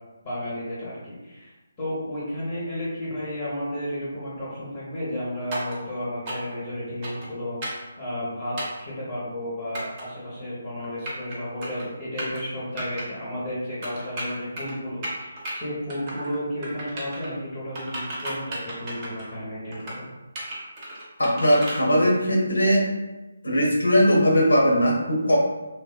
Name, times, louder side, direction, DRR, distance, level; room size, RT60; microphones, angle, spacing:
voice 1, 0.2-1.5 1.8-20.1, equal, 25° left, -9 dB, 0.8 m, -32 dB
sound 1, 5.5-5.8 6.2-6.5 7.0-7.3 7.6-7.8 8.6-8.8 9.7-10.0 10.8-11.3 11.6-11.8 12.2-12.4 12.8-13.0 13.8-14.7 15.0-15.5 15.9-16.4 16.6-17.3 17.7-19.3 19.7-20.0 20.3-21.8, right 1 dB, 25° right, 0.6 m, -34 dB
voice 2, 21.2-22.8 23.4-25.4, equal, 70° left, -2 dB, 0.7 m, -19 dB
2.7 x 2.1 x 2.2 m, 1.1 s
figure-of-eight pair, 145°, 0 cm